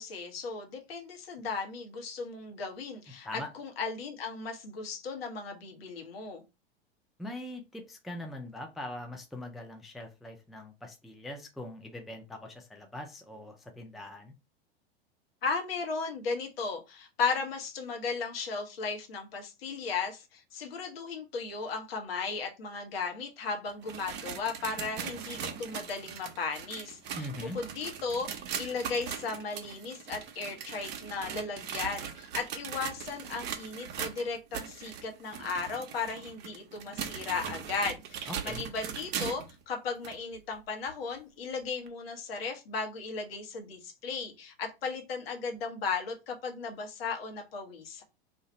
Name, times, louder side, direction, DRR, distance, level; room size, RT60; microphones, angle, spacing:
voice 1, 0.0-6.4 15.4-48.0, left 4 dB, 70° left, 3 dB, 1.1 m, -36 dB
voice 2, 7.2-14.3 27.1-27.6 38.3-38.6, left 1 dB, ahead, 3 dB, 0.4 m, -42 dB
sound 1, 23.7-39.5 40.0-40.1 40.9-41.0 41.9-42.0, right 8 dB, 35° right, 0.7 m, -40 dB
2.6 x 2.5 x 4.1 m, 0.26 s
hypercardioid pair, 100°, 31 cm